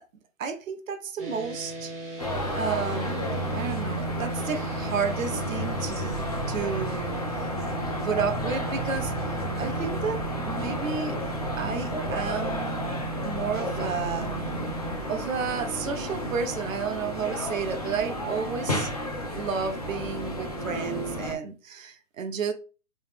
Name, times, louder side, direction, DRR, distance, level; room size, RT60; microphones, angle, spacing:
voice 1, 0.4-1.9 2.5-3.3 3.5-7.5 8.0-12.9 13.2-14.3 15.1-18.9 19.3-22.5, right 6 dB, 65° right, 0.7 m, -32 dB
sound 1, 1.2-14.9, right 3 dB, 25° right, 1.0 m, -37 dB
sound 2, 2.2-21.3, equal, 30° left, 0.4 m, -32 dB
3.2 x 2.8 x 3.3 m
hypercardioid pair, 160°, 43 cm